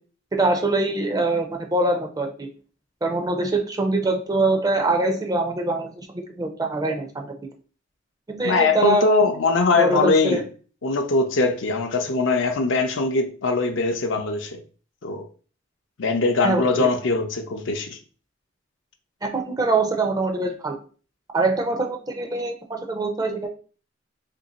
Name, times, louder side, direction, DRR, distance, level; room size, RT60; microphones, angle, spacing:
voice 1, 0.4-2.5 3.0-7.3 8.3-9.1 9.8-10.4 16.4-16.9 19.2-20.7 21.3-23.5, right 2 dB, 20° right, 0.5 m, -23 dB
voice 2, 8.4-10.4 10.8-14.6 15.0-15.3 16.0-18.0, left 3 dB, 65° left, 0.5 m, -21 dB
2.9 x 2.6 x 3.9 m
head